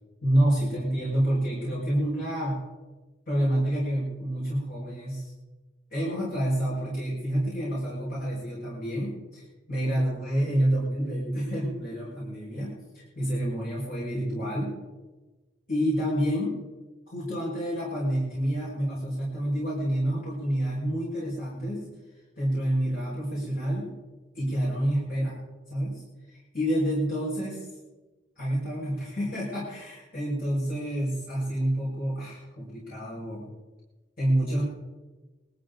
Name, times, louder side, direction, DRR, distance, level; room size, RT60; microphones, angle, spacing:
voice 1, 0.2-2.6 3.3-5.3 5.9-14.7 15.7-16.6 17.1-21.9 22.4-23.9 24.3-25.4 25.7-27.7 28.4-33.5 34.2-34.6, right 1 dB, 45° left, -7 dB, 6.0 m, -28 dB
21.0 x 14.0 x 4.1 m, 1.2 s
head